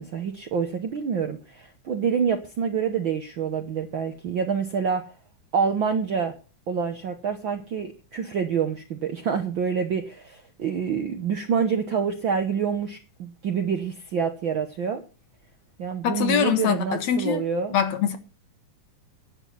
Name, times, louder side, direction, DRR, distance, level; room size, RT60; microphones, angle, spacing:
voice 1, 0.0-5.1 5.5-6.4 6.7-15.0 15.8-17.8, right 6 dB, 65° right, 1.2 m, -27 dB
voice 2, 16.0-17.4 17.7-18.2, left 8 dB, 65° left, 2.4 m, -23 dB
11.0 x 9.1 x 5.7 m
omnidirectional pair, 3.6 m